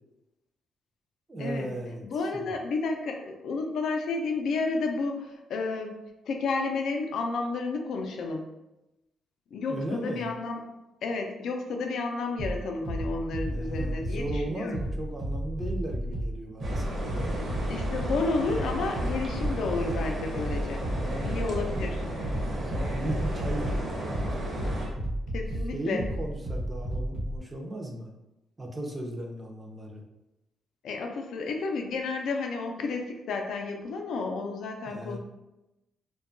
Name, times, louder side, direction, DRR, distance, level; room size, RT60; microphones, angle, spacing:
voice 1, 1.3-2.5 9.6-10.3 13.5-17.4 21.0-24.6 25.7-28.1 28.6-30.0 34.9-35.2, right 1 dB, 20° right, 1 dB, 0.5 m, -37 dB
voice 2, 2.0-5.9 6.3-8.4 9.5-10.6 11.0-14.8 17.7-20.8 21.2-22.0 25.3-26.1 30.8-35.2, left 3 dB, 70° left, 3 dB, 0.4 m, -31 dB
sound 1, 12.4-27.4, right 1 dB, 85° right, 0.9 m, -33 dB
sound 2, 16.6-24.9, equal, 45° right, 0.8 m, -34 dB
2.7 x 2.2 x 2.5 m, 0.94 s
cardioid pair, 105°, 0 cm